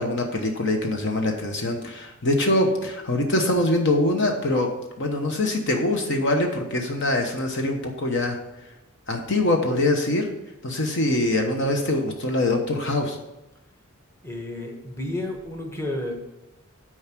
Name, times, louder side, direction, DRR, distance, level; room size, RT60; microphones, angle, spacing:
voice 1, 0.0-4.7 5.0-8.4 9.1-10.3 10.6-13.2, left 1 dB, 55° left, 3 dB, 1.1 m, -23 dB
voice 2, 14.2-16.1, left 1 dB, 10° left, 1 dB, 1.4 m, -31 dB
9.3 x 4.8 x 6.0 m, 0.98 s
head